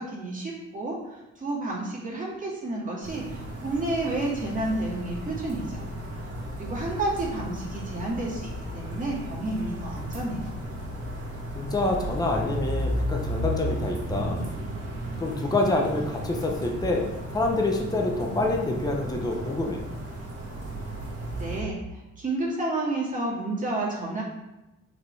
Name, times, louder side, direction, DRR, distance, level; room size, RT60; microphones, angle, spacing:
voice 1, 0.0-5.9 6.5-10.5 21.4-24.2, right 2 dB, 25° right, -4 dB, 2.2 m, -31 dB
sound 1, 3.0-21.6, right 1 dB, 50° right, 1.9 m, -34 dB
voice 2, 11.5-14.4 15.2-19.8, left 2 dB, 15° left, 1 dB, 0.9 m, -27 dB
5.8 x 5.0 x 3.4 m, 1.0 s
cardioid pair, 90°, 30 cm